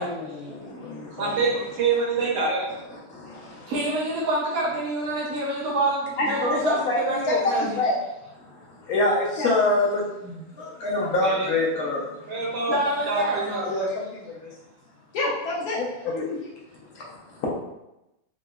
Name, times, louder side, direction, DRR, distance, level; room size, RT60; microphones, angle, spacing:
voice 1, 0.0-1.3 3.1-3.7 6.2-6.5 6.9-7.0 7.3-8.0 8.9-12.1 13.6-14.3 15.1-16.4 17.4-17.5, left 2 dB, 70° left, -4 dB, 0.9 m, -26 dB
voice 2, 1.2-2.7 11.2-11.5 12.3-12.8 13.1-13.7, right 4 dB, 90° right, -4 dB, 1.6 m, -25 dB
voice 3, 3.7-7.8 12.7-13.6, right 1 dB, 70° right, -4 dB, 0.9 m, -27 dB
3.6 x 2.0 x 2.3 m, 0.93 s
omnidirectional pair, 2.0 m